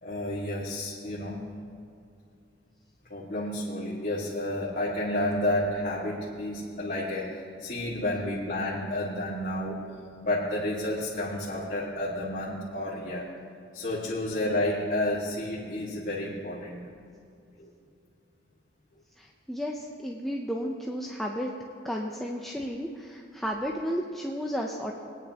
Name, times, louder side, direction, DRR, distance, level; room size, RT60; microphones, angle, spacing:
voice 1, 0.0-1.4 3.1-9.9 10.2-13.3 13.7-16.8 17.6-17.7, left 1 dB, 45° left, -7 dB, 1.8 m, -31 dB
voice 2, 19.2-21.5 21.8-24.9, equal, ahead, -1 dB, 0.5 m, -33 dB
21.0 x 9.6 x 2.9 m, 2.5 s
head